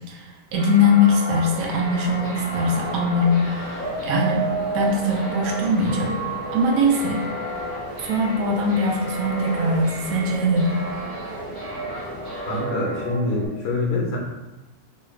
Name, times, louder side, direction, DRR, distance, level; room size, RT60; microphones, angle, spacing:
voice 1, 0.1-4.5 4.7-6.2 6.5-7.2 8.0-10.8, left 2 dB, 75° right, -1 dB, 1.0 m, -21 dB
sound 1, 0.5-13.5, right 2 dB, 15° right, 1.1 m, -32 dB
sound 2, 1.5-12.6, equal, 35° right, 1.0 m, -37 dB
voice 2, 12.5-14.2, left 2 dB, 70° left, -3 dB, 1.2 m, -25 dB
3.2 x 2.3 x 3.1 m, 1.0 s
omnidirectional pair, 1.6 m